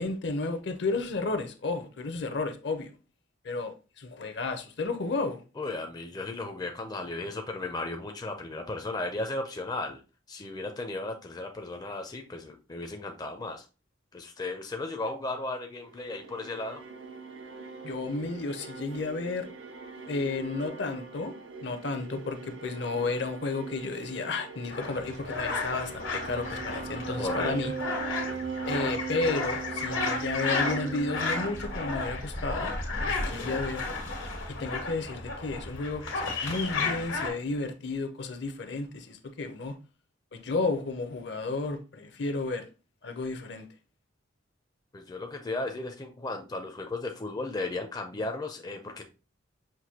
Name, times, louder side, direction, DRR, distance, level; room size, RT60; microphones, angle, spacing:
voice 1, 0.0-2.9 3.4-5.4 17.8-19.5 20.1-21.3 21.6-27.7 28.7-32.7 33.0-33.8 34.6-39.8 40.3-42.6 43.0-43.7, left 3 dB, 60° left, 0.6 m, -32 dB
voice 2, 5.6-10.0 10.3-13.7 14.1-16.8 27.2-27.8 44.9-49.0, left 2 dB, 20° left, 0.4 m, -35 dB
sound 1, 15.8-32.2, right 5 dB, 85° right, 0.6 m, -40 dB
sound 2, 24.7-37.3, left 3 dB, 85° left, 1.4 m, -33 dB
5.9 x 2.6 x 2.8 m
head